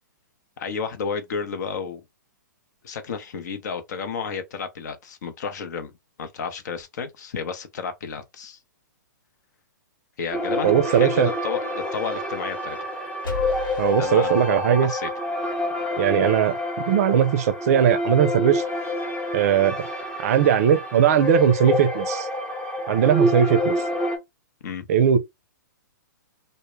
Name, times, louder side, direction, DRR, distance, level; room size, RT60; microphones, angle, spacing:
voice 1, 0.6-2.0 2.8-5.9 6.2-8.6 10.2-12.8 14.0-14.3 14.8-15.1 24.6-24.9, left 6 dB, 60° left, 0.7 m, -32 dB
sound 1, 10.3-24.2, left 1 dB, 10° left, 0.6 m, -27 dB
voice 2, 10.6-11.3 13.8-14.9 16.0-18.6 19.3-19.8 20.2-22.3 22.9-23.8 24.9-25.2, right 9 dB, 50° right, 0.5 m, -19 dB
sound 2, 13.2-15.3, left 3 dB, 80° left, 1.1 m, -34 dB
2.2 x 2.1 x 3.0 m
hypercardioid pair, 130°, 11 cm